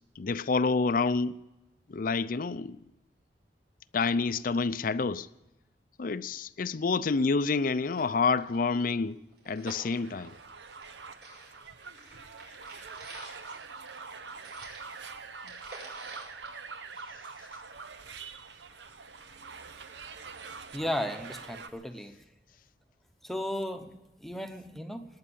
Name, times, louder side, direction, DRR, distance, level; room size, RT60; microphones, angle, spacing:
voice 1, 0.2-1.4 1.9-2.8 3.9-5.3 6.0-9.2 9.5-10.4, left 4 dB, 50° left, 0.5 m, -28 dB
sound 1, 7.0-7.1 7.4-7.5 7.8-10.9 11.2-17.3 17.7-17.8, right 2 dB, 70° right, 6.5 m, -49 dB
sound 2, 10.0-21.7, right 4 dB, 85° right, 1.0 m, -45 dB
voice 2, 20.7-22.1 23.2-25.1, equal, ahead, 0.9 m, -35 dB
18.5 x 9.7 x 7.0 m
head